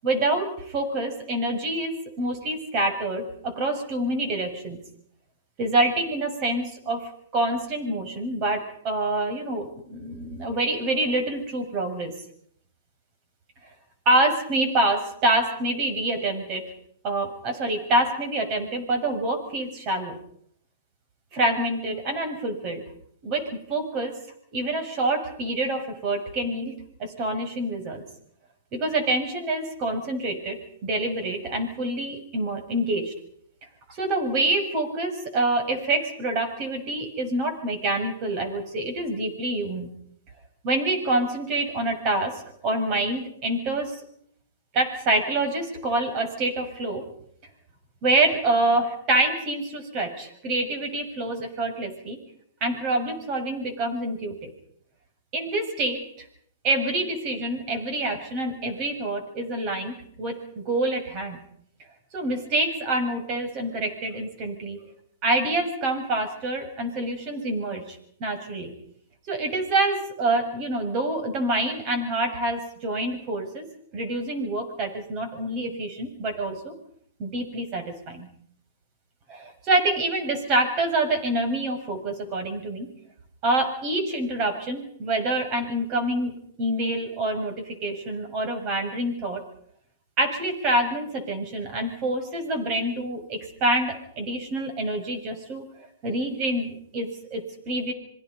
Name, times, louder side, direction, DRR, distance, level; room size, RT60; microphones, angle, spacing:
voice 1, 0.0-4.8 5.6-12.1 14.1-16.6 17.0-20.2 21.3-22.8 23.2-24.2 24.5-26.7 27.0-28.0 28.7-33.1 33.9-39.9 40.6-44.0 44.7-47.0 48.0-52.2 52.6-54.3 55.3-56.3 56.6-61.4 62.1-64.8 65.2-68.7 69.3-73.6 73.9-76.7 77.2-78.3 79.3-82.9 83.4-89.4 90.2-95.6 96.0-97.9, right 2 dB, 35° right, 6 dB, 7.0 m, -26 dB
27.0 x 23.0 x 5.5 m, 0.68 s
hypercardioid pair, 135°, 0 cm